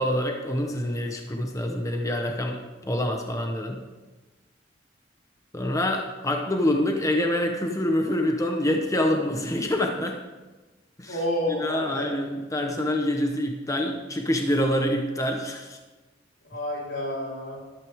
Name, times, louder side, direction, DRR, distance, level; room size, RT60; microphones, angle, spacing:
voice 1, 0.0-3.8 5.5-10.2 11.0-11.2 11.5-15.8, left 1 dB, 20° left, 2 dB, 1.0 m, -26 dB
voice 2, 11.1-12.3 16.4-17.6, left 1 dB, 85° left, -4 dB, 4.2 m, -30 dB
14.0 x 12.5 x 3.6 m, 1.2 s
head